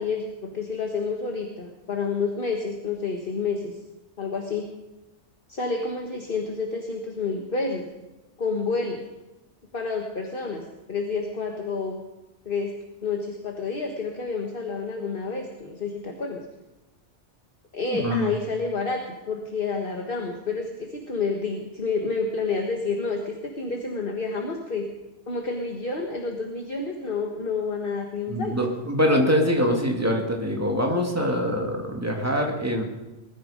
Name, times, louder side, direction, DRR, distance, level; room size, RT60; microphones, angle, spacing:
voice 1, 0.0-3.8 4.2-4.7 5.5-7.9 8.4-9.0 9.7-10.6 10.9-12.0 12.4-12.7 13.0-16.4 17.7-19.0 19.3-24.9 25.3-28.6, left 4 dB, 50° left, 2 dB, 1.7 m, -29 dB
voice 2, 17.9-18.3 28.3-32.8, equal, 15° right, 1 dB, 2.6 m, -24 dB
21.0 x 13.5 x 5.2 m, 1.1 s
omnidirectional pair, 1.2 m